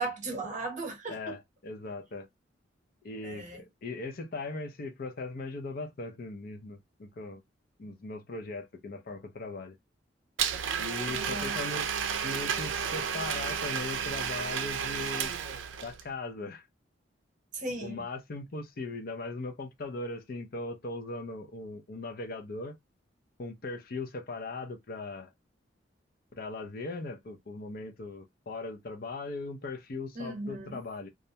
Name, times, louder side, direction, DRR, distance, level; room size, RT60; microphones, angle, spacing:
voice 1, 0.0-1.4 3.2-3.6 11.1-11.6 17.5-18.0 30.2-30.8, right 2 dB, 40° right, 0.8 m, -37 dB
voice 2, 1.1-2.3 3.0-7.4 7.8-9.8 10.8-11.9 12.2-15.3 15.8-16.7 17.8-22.8 23.4-25.3 26.4-31.1, left 3 dB, 50° left, 0.5 m, -39 dB
Domestic sounds home sounds, 10.4-16.0, right 7 dB, 85° right, 0.4 m, -32 dB
2.4 x 2.1 x 2.7 m
head